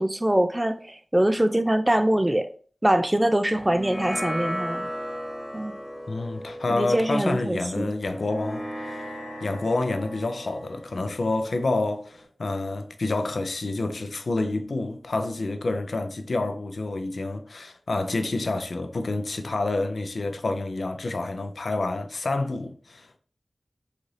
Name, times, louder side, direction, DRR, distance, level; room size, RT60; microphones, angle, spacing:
voice 1, 0.0-2.5 2.8-4.9 5.5-5.7 6.7-7.9, right 1 dB, 20° right, 0.3 m, -23 dB
sound 1, 3.5-12.3, equal, 20° left, 0.9 m, -36 dB
voice 2, 6.1-9.0 9.4-23.2, left 2 dB, 80° left, 0.5 m, -28 dB
3.9 x 2.5 x 3.2 m
wide cardioid pair, 70°, 0 cm